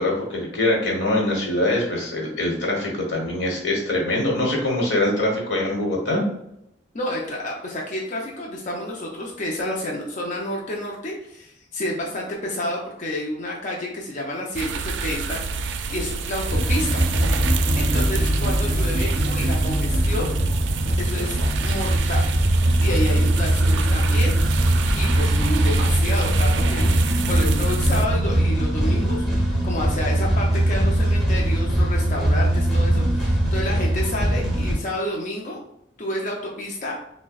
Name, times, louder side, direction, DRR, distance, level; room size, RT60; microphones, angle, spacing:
voice 1, 0.0-6.2, left 1 dB, 90° left, -1 dB, 1.1 m, -23 dB
voice 2, 6.9-17.1 17.8-20.3 21.0-22.2 22.8-35.6 36.0-36.9, left 1 dB, 45° left, -2 dB, 0.6 m, -30 dB
sound 1, 14.5-28.1, right 4 dB, 80° right, 0.3 m, -29 dB
sound 2, 16.5-34.7, right 1 dB, ahead, 1.2 m, -21 dB
5.8 x 2.2 x 2.3 m, 0.78 s
head